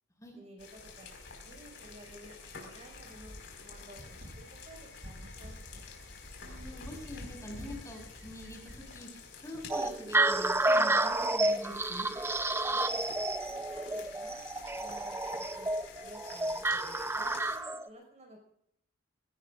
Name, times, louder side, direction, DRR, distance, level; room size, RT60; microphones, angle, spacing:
voice 1, 0.4-1.2 1.4-3.3 3.6-4.0 4.3-5.6 12.7-13.0 13.5-15.7 16.0-18.5, right 1 dB, 35° right, 2 dB, 5.3 m, -54 dB
sound 1, 0.6-17.6, left 5 dB, 60° left, 5.1 m, -50 dB
sound 2, 0.9-9.0, equal, 60° right, 6.8 m, -50 dB
voice 2, 6.4-9.1 9.4-12.1, left 1 dB, 15° left, 1 dB, 5.7 m, -45 dB
sound 3, 9.7-17.9, right 2 dB, 10° right, 0.6 m, -30 dB
22.5 x 18.5 x 2.5 m, 0.72 s
head